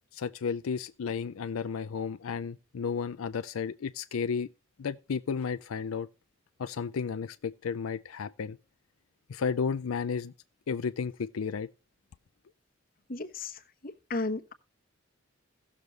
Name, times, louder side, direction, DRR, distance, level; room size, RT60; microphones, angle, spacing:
voice 1, 0.1-4.5 4.8-6.1 6.6-8.6 9.3-10.3 10.7-11.7, left 6 dB, 85° left, 0.4 m, -33 dB
voice 2, 13.1-13.5 14.1-14.5, left 2 dB, 45° left, 1.0 m, -33 dB
16.5 x 6.7 x 3.2 m
head